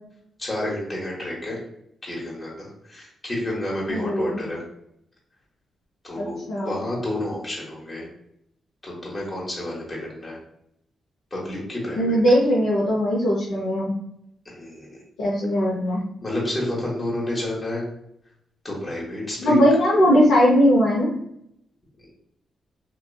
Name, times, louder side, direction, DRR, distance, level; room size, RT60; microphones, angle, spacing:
voice 1, 0.4-1.6 2.0-4.6 6.0-8.1 8.8-10.4 11.3-12.2 14.4-15.0 16.2-17.8 18.6-19.6 22.0-22.1, left 1 dB, 25° left, -4 dB, 1.0 m, -30 dB
voice 2, 3.9-4.4 6.1-6.8 12.0-13.9 15.2-16.0 19.4-21.2, equal, 90° left, -8 dB, 0.6 m, -19 dB
2.9 x 2.3 x 2.2 m, 0.76 s
supercardioid pair, 55°, 0 cm